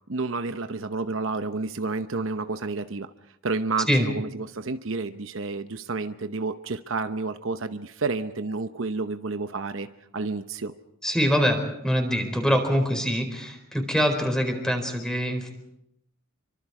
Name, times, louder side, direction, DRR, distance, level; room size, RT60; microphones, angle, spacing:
voice 1, 0.1-3.1 3.4-9.9 10.1-10.7, right 3 dB, 65° right, 9 dB, 0.9 m, -30 dB
voice 2, 11.0-15.5, equal, 5° left, 4 dB, 4.5 m, -24 dB
28.0 x 24.5 x 4.9 m, 0.80 s
head